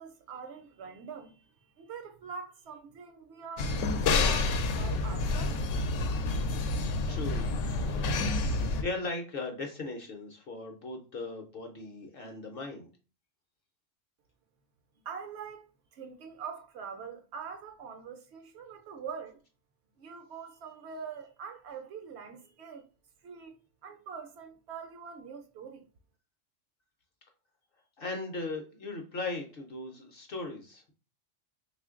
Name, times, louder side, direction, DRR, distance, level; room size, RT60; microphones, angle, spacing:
voice 1, 0.0-5.6 15.1-15.7 15.9-19.4 20.0-22.8 23.2-23.5 23.8-25.9, right 6 dB, 65° right, 0.8 m, -44 dB
sound 1, 3.6-8.8, left 3 dB, 85° left, 0.9 m, -29 dB
voice 2, 6.7-7.5 7.8-8.2 8.8-12.9 28.0-30.9, left 3 dB, 55° left, 0.7 m, -38 dB
3.1 x 2.4 x 3.6 m
omnidirectional pair, 1.3 m